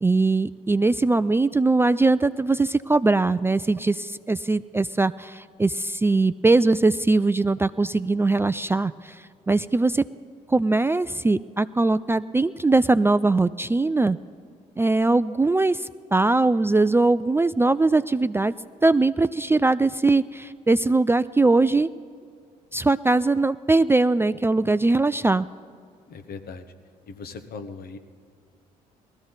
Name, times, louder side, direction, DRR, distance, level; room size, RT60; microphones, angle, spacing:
voice 1, 0.0-10.0 10.5-14.2 14.8-18.5 18.8-21.9 22.7-25.5, right 3 dB, 15° right, 14 dB, 0.3 m, -21 dB
voice 2, 26.1-26.6 27.1-28.0, left 4 dB, 60° left, 9 dB, 1.1 m, -38 dB
19.5 x 14.0 x 4.0 m, 2.3 s
hypercardioid pair, 55°, 18 cm